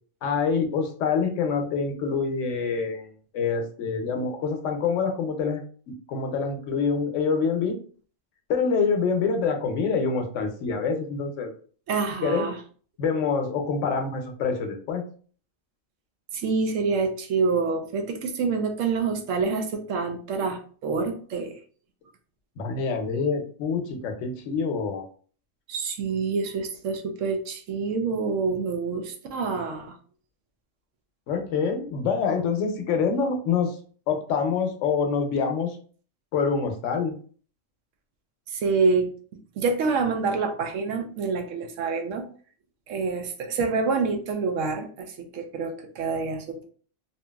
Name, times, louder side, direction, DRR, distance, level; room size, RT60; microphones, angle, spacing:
voice 1, 0.2-3.1 3.3-5.6 6.1-7.8 8.5-11.5 12.2-12.5 13.0-15.0 22.6-25.1 31.3-33.8 34.1-35.8 36.3-37.2, left 5 dB, 80° left, 5 dB, 0.9 m, -26 dB
voice 2, 11.9-12.6 16.3-21.5 25.7-29.9 38.5-39.1 39.6-42.2 42.9-46.6, right 4 dB, 90° right, 6 dB, 0.9 m, -27 dB
2.8 x 2.6 x 2.2 m, 0.44 s
omnidirectional pair, 1.3 m